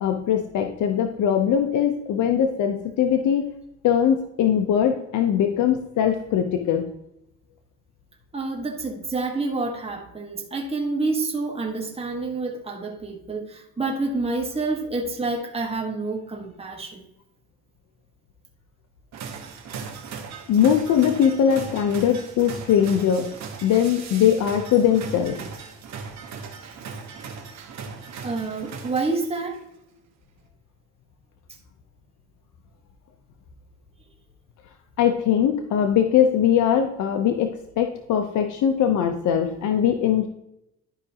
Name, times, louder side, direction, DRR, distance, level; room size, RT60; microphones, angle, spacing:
voice 1, 0.0-3.4 3.8-6.9 20.5-23.3 23.6-25.4 35.0-40.3, left 9 dB, 75° left, 5 dB, 0.8 m, -21 dB
voice 2, 8.3-17.0 28.2-29.6, right 3 dB, 20° right, 1 dB, 1.4 m, -28 dB
sound 1, 19.1-29.5, right 5 dB, 65° right, 1.4 m, -38 dB
11.5 x 4.9 x 2.9 m, 0.81 s
cardioid pair, 90°, 30 cm